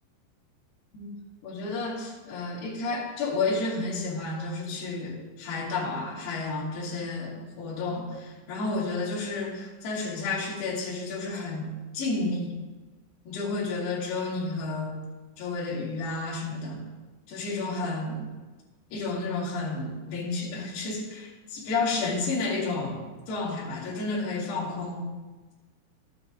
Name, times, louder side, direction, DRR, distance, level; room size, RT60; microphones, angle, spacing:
voice 1, 1.4-11.7 11.9-12.5 13.3-15.0 15.4-16.8 17.3-18.3 18.9-25.1, left 3 dB, 60° left, -6 dB, 4.5 m, -31 dB
13.0 x 9.8 x 3.8 m, 1.2 s
omnidirectional pair, 5.5 m